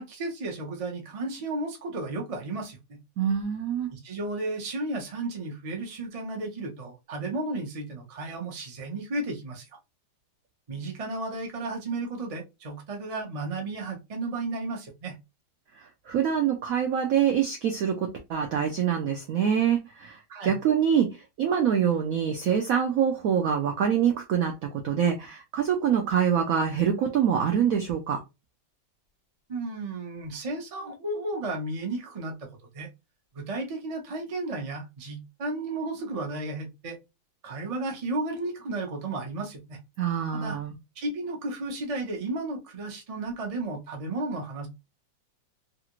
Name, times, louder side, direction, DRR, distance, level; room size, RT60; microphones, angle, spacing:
voice 1, 0.0-2.8 3.9-9.7 10.7-15.2 20.3-20.5 29.5-32.5 32.7-32.9 33.3-37.0 37.4-39.8 40.3-40.6 41.0-44.7, right 2 dB, 55° right, 0.4 m, -33 dB
voice 2, 3.2-3.9 16.1-28.2 40.0-40.7, right 8 dB, 90° right, 0.7 m, -25 dB
3.2 x 2.5 x 3.0 m
omnidirectional pair, 2.1 m